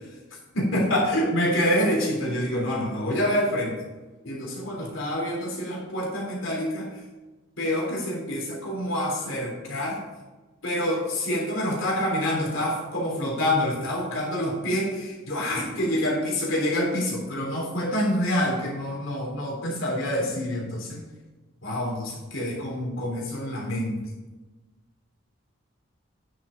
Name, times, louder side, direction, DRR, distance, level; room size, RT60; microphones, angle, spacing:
voice 1, 0.5-3.8 4.2-7.0 7.6-10.0 10.6-21.0 21.6-24.0, equal, 70° left, -3 dB, 3.4 m, -27 dB
9.7 x 6.3 x 5.1 m, 1.2 s
head